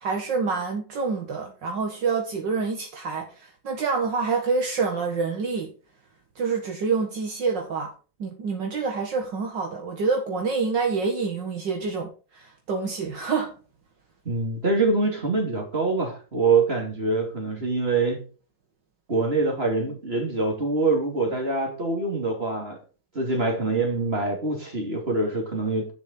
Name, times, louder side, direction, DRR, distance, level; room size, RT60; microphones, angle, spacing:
voice 1, 0.0-5.7 6.4-7.9 8.2-13.5, right 4 dB, 65° right, 2.2 m, -27 dB
voice 2, 14.2-18.2 19.1-22.8 23.1-25.9, right 3 dB, 30° right, 2.9 m, -24 dB
11.0 x 7.1 x 4.3 m
omnidirectional pair, 2.1 m